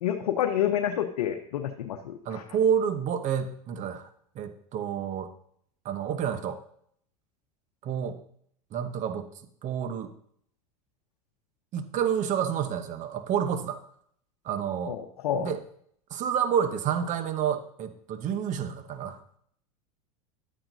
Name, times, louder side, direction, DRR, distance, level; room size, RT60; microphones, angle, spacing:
voice 1, 0.0-2.4 14.9-15.5, left 10 dB, 85° left, 3 dB, 0.8 m, -28 dB
voice 2, 2.2-4.1 4.3-5.3 5.8-6.6 7.8-8.2 8.7-9.3 9.6-10.1 11.7-13.8 14.4-15.0 15.4-15.6 16.1-19.2, right 8 dB, 40° right, 9 dB, 1.0 m, -29 dB
12.0 x 8.7 x 2.7 m, 0.66 s
hypercardioid pair, 105°, 19 cm